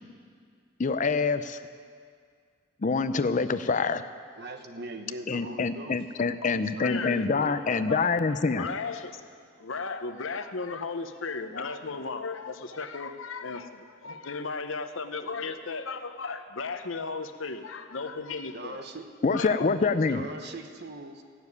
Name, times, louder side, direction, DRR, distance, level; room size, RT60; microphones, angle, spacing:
voice 1, 0.8-1.6 2.8-4.0 5.3-8.7 19.2-20.2, left 4 dB, 40° left, 11 dB, 0.5 m, -26 dB
voice 2, 4.4-6.0 6.6-7.9 18.5-19.1 20.1-21.2, right 2 dB, 55° right, 6 dB, 1.0 m, -41 dB
voice 3, 6.4-7.3 7.8-9.2 9.6-18.8 19.3-19.9, left 4 dB, 80° left, 8 dB, 0.9 m, -35 dB
15.0 x 7.0 x 9.6 m, 2.1 s
head